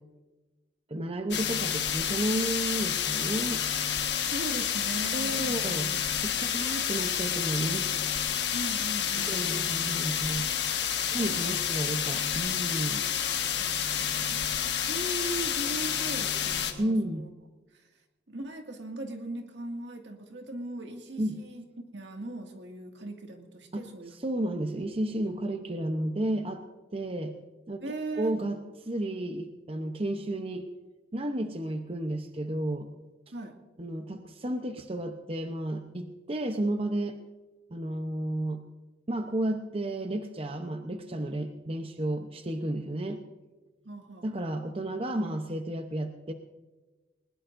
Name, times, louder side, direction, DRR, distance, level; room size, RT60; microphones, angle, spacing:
voice 1, 0.9-3.6 5.1-5.9 6.2-7.9 8.3-8.4 9.3-10.5 11.1-13.0 16.8-17.3 21.2-21.4 23.7-23.8 24.1-26.6 26.9-27.4 27.7-27.8 28.2-30.7 31.1-32.9 33.8-37.2 37.7-38.6 39.1-43.2 44.2-46.3, right 1 dB, 30° right, 6 dB, 0.8 m, -32 dB
sound 1, 1.3-16.7, left 9 dB, 70° left, 1.5 m, -29 dB
voice 2, 4.2-6.2 8.5-9.7 11.2-11.4 13.6-17.3 17.7-17.8 18.3-24.1 27.8-28.3 33.3-33.6 43.8-44.5, right 2 dB, 80° right, 3 dB, 2.1 m, -39 dB
20.5 x 20.5 x 2.6 m, 1.2 s
head